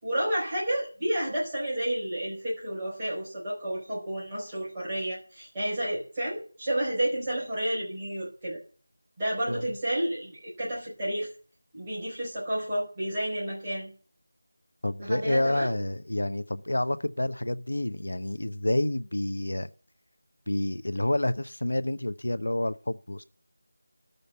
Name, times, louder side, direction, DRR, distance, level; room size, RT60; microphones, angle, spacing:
voice 1, 0.0-8.6 9.2-11.3 11.7-13.9 15.0-15.7, right 1 dB, 10° right, 4.8 m, -31 dB
voice 2, 14.8-19.7 20.5-23.2, left 1 dB, 70° left, 0.7 m, -28 dB
12.5 x 6.7 x 8.1 m
figure-of-eight pair, 180°, 0 cm